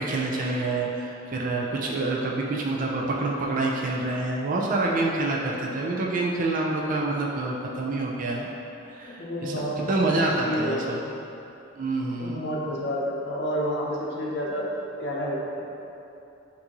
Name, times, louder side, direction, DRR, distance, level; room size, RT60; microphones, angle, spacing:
voice 1, 0.0-8.5 8.8-11.0 11.8-12.4, right 2 dB, 40° right, -2 dB, 0.4 m, -27 dB
voice 2, 9.1-9.9 10.4-11.1 12.2-14.7 15.0-15.4, equal, 60° left, -3 dB, 0.7 m, -29 dB
6.0 x 2.7 x 2.9 m, 2.9 s
head